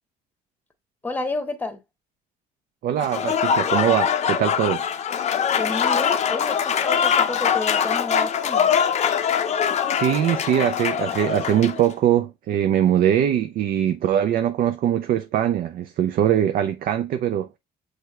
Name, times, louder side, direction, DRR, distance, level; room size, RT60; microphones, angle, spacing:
voice 1, 1.0-1.8 5.6-8.7, left 2 dB, 10° left, 1.0 m, -30 dB
voice 2, 2.8-4.8 9.9-17.5, right 10 dB, 60° right, 0.4 m, -22 dB
Applause / Crowd, 3.0-11.8, left 8 dB, 40° left, 0.5 m, -23 dB
6.3 x 3.2 x 2.3 m
cardioid pair, 110°, 17 cm